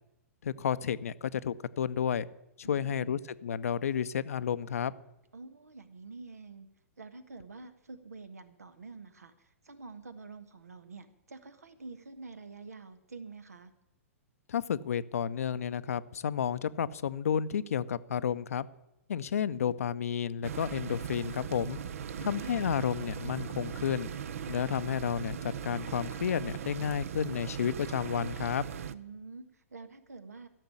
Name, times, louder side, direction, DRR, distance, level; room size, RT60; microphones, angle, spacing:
voice 1, 0.4-2.3 2.6-4.9 14.5-18.7 19.1-21.8 22.2-24.1 24.5-28.7, left 8 dB, 70° left, 15 dB, 0.6 m, -31 dB
voice 2, 2.6-3.2 5.3-6.7 7.0-13.7 22.1-22.7 28.9-30.5, right 4 dB, 85° right, 11 dB, 1.5 m, -47 dB
sound 1, 20.4-28.9, right 8 dB, 65° right, 0.7 m, -39 dB
13.5 x 6.9 x 9.8 m, 0.88 s
hypercardioid pair, 115°, 8 cm